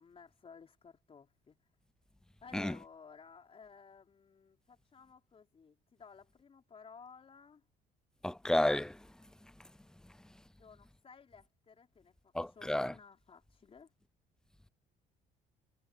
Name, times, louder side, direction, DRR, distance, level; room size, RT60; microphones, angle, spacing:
voice 1, 0.0-1.6 2.4-7.6 10.6-13.9, left 5 dB, 35° left, 5.0 m, -56 dB
voice 2, 8.2-9.0 12.3-12.9, left 1 dB, 5° left, 0.6 m, -31 dB
cardioid pair, 110°, 17 cm